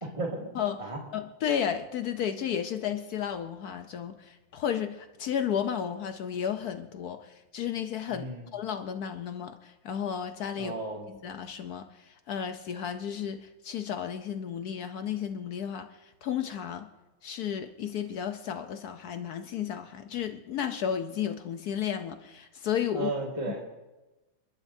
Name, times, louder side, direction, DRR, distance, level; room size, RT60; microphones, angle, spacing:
voice 1, 0.0-0.5 0.8-1.0 8.1-8.5 10.6-11.1 22.9-23.6, right 2 dB, 15° right, 1.6 m, -34 dB
voice 2, 1.1-8.3 8.5-10.7 11.1-16.9 17.2-23.1, left 8 dB, 70° left, 0.9 m, -33 dB
29.5 x 11.5 x 2.7 m
omnidirectional pair, 2.3 m